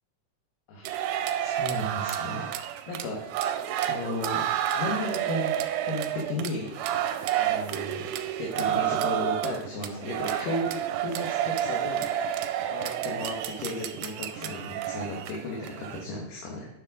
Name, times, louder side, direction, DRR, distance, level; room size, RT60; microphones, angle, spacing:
sound 1, 0.8-16.1, right 11 dB, 80° right, 2.1 m, -30 dB
voice 1, 1.4-3.3 3.8-4.5 4.7-5.5 5.8-6.8 7.4-8.0 8.4-16.7, left 2 dB, 75° left, -3 dB, 3.0 m, -35 dB
9.9 x 6.0 x 3.7 m, 0.80 s
omnidirectional pair, 3.8 m